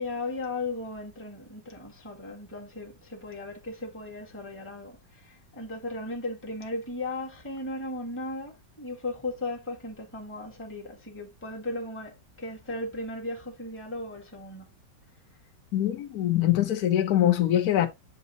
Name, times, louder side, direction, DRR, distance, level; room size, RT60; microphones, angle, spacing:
voice 1, 0.0-14.7, left 2 dB, 10° left, 1.3 m, -36 dB
voice 2, 15.7-17.9, left 12 dB, 60° left, 1.3 m, -23 dB
8.2 x 2.9 x 4.0 m
omnidirectional pair, 2.0 m